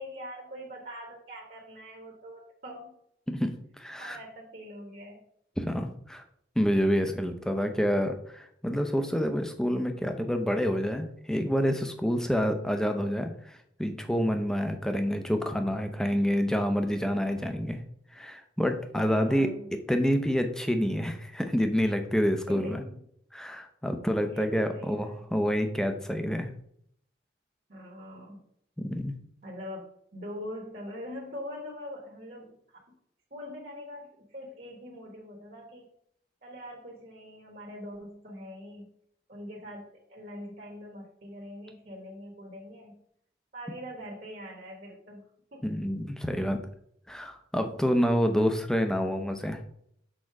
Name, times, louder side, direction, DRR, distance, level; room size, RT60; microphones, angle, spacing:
voice 1, 0.0-2.9 4.0-5.3 19.1-19.7 22.5-23.0 24.2-25.4 27.7-28.4 29.4-32.8 33.3-35.9 36.4-38.9 39.3-43.0 43.5-45.2 45.5-45.7, equal, 50° right, -1 dB, 1.2 m, -43 dB
voice 2, 3.3-4.2 5.6-6.2 6.6-17.8 18.1-22.8 23.3-26.5 28.8-29.1 45.6-46.6 47.1-49.6, equal, 5° left, 6 dB, 0.5 m, -28 dB
6.4 x 3.7 x 4.7 m, 0.69 s
head